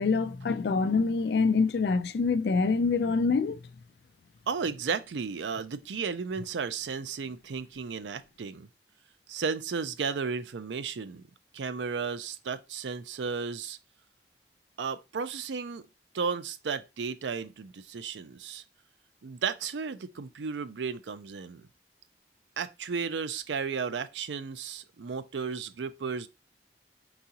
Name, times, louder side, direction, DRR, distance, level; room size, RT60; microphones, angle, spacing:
voice 1, 0.0-3.6, left 4 dB, 65° left, 0.4 m, -25 dB
voice 2, 4.5-8.7 9.3-11.2 11.5-13.8 14.8-15.9 16.1-18.6 19.2-21.6 22.6-26.3, right 5 dB, 85° right, 0.5 m, -34 dB
4.7 x 3.9 x 2.8 m
head